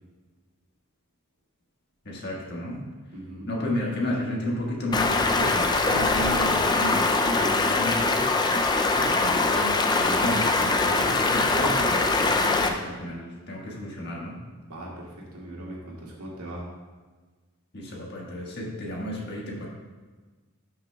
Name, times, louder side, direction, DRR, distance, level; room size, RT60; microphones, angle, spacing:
voice 1, 2.0-2.8 3.5-8.2 8.9-14.4 17.7-19.7, left 1 dB, 50° left, -3 dB, 1.5 m, -32 dB
voice 2, 3.1-3.5 14.7-16.7, right 1 dB, 85° right, -4 dB, 2.0 m, -39 dB
Stream, 4.9-12.7, left 3 dB, 20° left, 0.4 m, -23 dB
12.0 x 5.8 x 2.3 m, 1.3 s
head